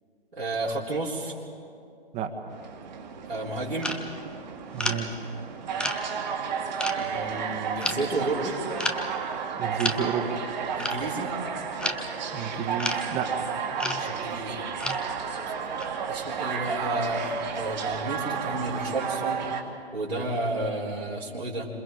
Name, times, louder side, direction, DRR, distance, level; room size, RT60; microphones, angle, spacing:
voice 1, 0.3-1.3 3.2-3.9 6.9-8.6 10.8-11.3 13.9-14.6 16.1-19.4 19.9-21.7, right 2 dB, 80° right, -7 dB, 4.1 m, -31 dB
sound 1, 2.5-19.6, right 6 dB, 45° right, 2.4 m, -32 dB
sound 2, 3.8-4.0 4.8-5.1 5.8-6.0 6.4-6.5 6.8-7.0 7.8-8.0 8.8-9.0 9.8-10.0 10.8-11.0 11.8-12.0 12.8-13.0 13.8-14.0 14.8-15.1 15.8-15.9, left 2 dB, 5° left, 0.9 m, -30 dB
voice 2, 4.7-5.2 9.6-10.5 12.3-13.5, right 7 dB, 20° right, 5 dB, 1.8 m, -31 dB
28.5 x 26.5 x 5.2 m, 2.5 s
figure-of-eight pair, 120°, 30 cm